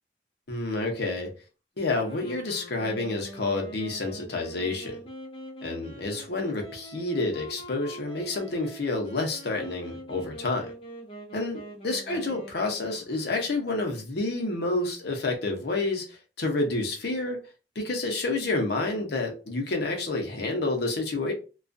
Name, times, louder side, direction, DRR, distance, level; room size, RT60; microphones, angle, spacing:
voice 1, 0.5-1.3 1.8-5.0 5.6-10.7 11.3-17.4 17.8-21.3, left 2 dB, 65° left, 0.7 m, -29 dB
sound 1, 1.9-13.8, right 1 dB, 30° left, 0.7 m, -44 dB
2.3 x 2.2 x 2.5 m
head